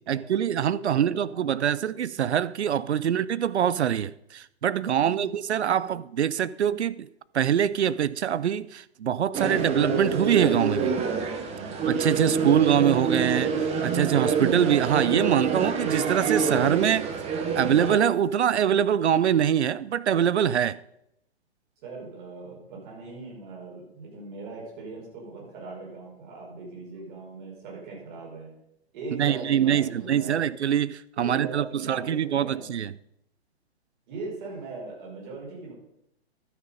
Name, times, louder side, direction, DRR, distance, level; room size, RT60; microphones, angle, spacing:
voice 1, 0.1-7.1 7.3-11.0 11.8-13.5 13.8-17.1 17.6-20.8 29.2-32.9, right 9 dB, 80° right, 0.6 m, -24 dB
voice 2, 0.9-2.1 2.9-3.3 4.9-5.3 21.8-28.5 28.9-30.5 31.2-32.7 34.1-35.7, right 3 dB, 45° right, 5.0 m, -40 dB
sound 1, 9.3-18.0, right 5 dB, 20° right, 1.0 m, -27 dB
12.0 x 6.4 x 5.2 m
hypercardioid pair, 125°, 33 cm